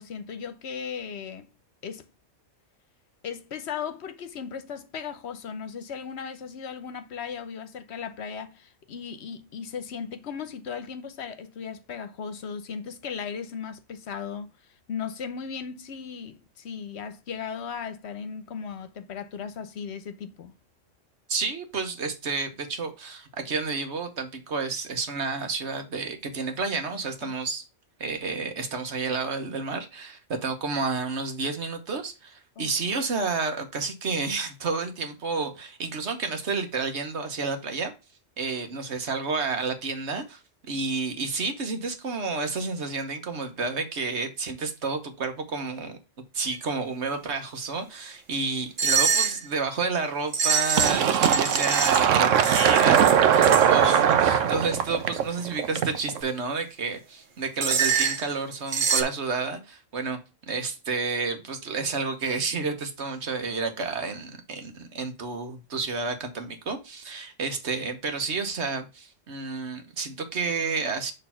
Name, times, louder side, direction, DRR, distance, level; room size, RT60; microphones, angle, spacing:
voice 1, 0.0-1.5 1.8-2.1 3.2-14.5 14.9-20.5 27.2-27.3 32.6-32.7, left 6 dB, 60° left, 1.1 m, -36 dB
voice 2, 21.3-27.6 28.0-37.9 38.4-46.0 46.3-60.2 60.5-71.1, right 4 dB, 60° right, 1.4 m, -30 dB
sound 1, 48.8-49.4 50.3-52.1 52.4-53.7 57.6-58.2 58.7-59.0, right 6 dB, 45° right, 1.0 m, -25 dB
Fill (with liquid), 50.8-56.2, right 8 dB, 75° right, 1.1 m, -20 dB
6.7 x 3.3 x 5.6 m
omnidirectional pair, 1.3 m